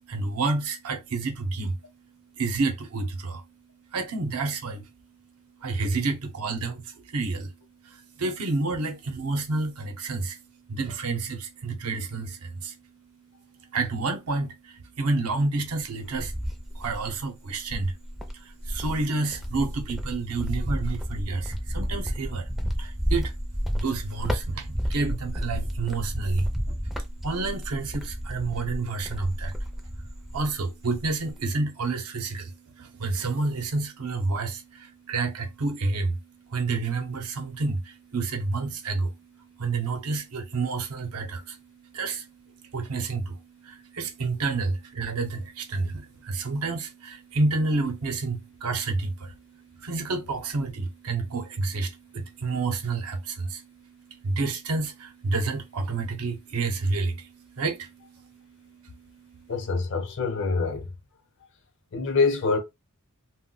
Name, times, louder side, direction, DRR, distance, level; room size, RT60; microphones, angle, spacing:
voice 1, 0.1-1.8 2.4-3.4 3.9-4.9 5.6-7.5 7.8-10.4 10.7-12.8 13.7-16.3 16.7-17.9 18.3-22.5 22.8-23.4 23.7-26.8 27.2-29.6 30.3-36.2 36.4-59.5, right 3 dB, 80° right, 0.7 m, -30 dB
Cricket, 15.7-17.2 17.7-30.6 30.9-31.5, equal, ahead, 0.4 m, -31 dB
voice 2, 59.5-60.9 61.9-62.6, left 4 dB, 60° left, 0.7 m, -25 dB
2.2 x 2.1 x 3.7 m
head